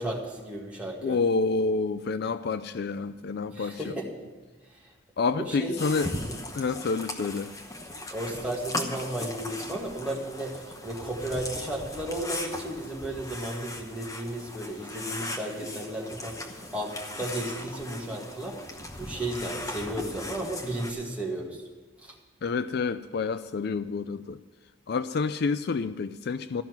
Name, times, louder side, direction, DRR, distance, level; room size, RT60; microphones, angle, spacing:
voice 1, 0.0-1.2 3.5-4.1 4.7-4.9 5.3-5.8 6.2-6.3 8.1-21.6 22.0-22.2, right 1 dB, 5° right, -3 dB, 1.9 m, -34 dB
voice 2, 1.0-3.9 5.2-6.1 6.5-7.5 22.4-24.4 24.9-26.6, left 4 dB, 55° left, 12 dB, 0.4 m, -28 dB
sound 1, 5.8-20.9, left 1 dB, 15° left, 1.0 m, -38 dB
14.0 x 6.0 x 9.1 m, 1.3 s
head